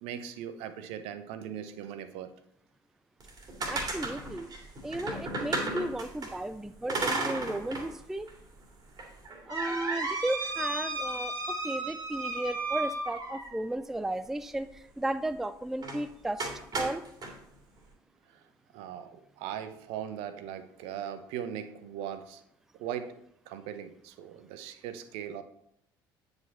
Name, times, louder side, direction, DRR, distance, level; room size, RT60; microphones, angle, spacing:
voice 1, 0.0-2.3 18.7-22.4 22.8-23.1 23.5-25.4, right 9 dB, 55° right, 10 dB, 0.8 m, -39 dB
sound 1, 3.2-6.3 6.9-7.9 8.3-8.4 9.0-13.7 15.8-16.0 16.4-17.3, right 2 dB, 35° right, 2.2 m, -34 dB
voice 2, 3.7-4.5 4.8-8.3 9.5-16.5 16.8-17.0, right 1 dB, 5° right, 12 dB, 0.3 m, -34 dB
9.3 x 5.3 x 4.2 m, 0.73 s
figure-of-eight pair, 55°, 12 cm